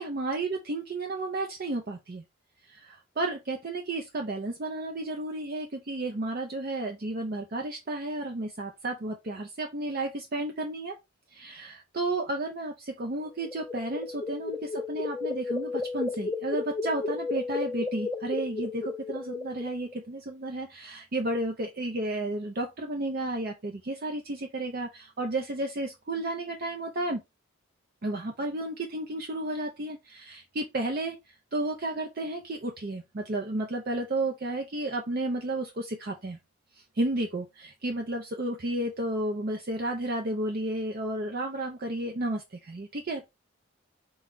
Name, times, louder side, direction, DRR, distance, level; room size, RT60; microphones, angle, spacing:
voice 1, 0.0-2.2 2.7-10.9 11.3-27.2 28.0-31.2 31.5-36.4 36.8-43.3, right 2 dB, 45° right, 0.5 m, -32 dB
sound 1, 13.3-19.9, left 3 dB, 10° left, 0.5 m, -33 dB
4.2 x 2.4 x 3.7 m
head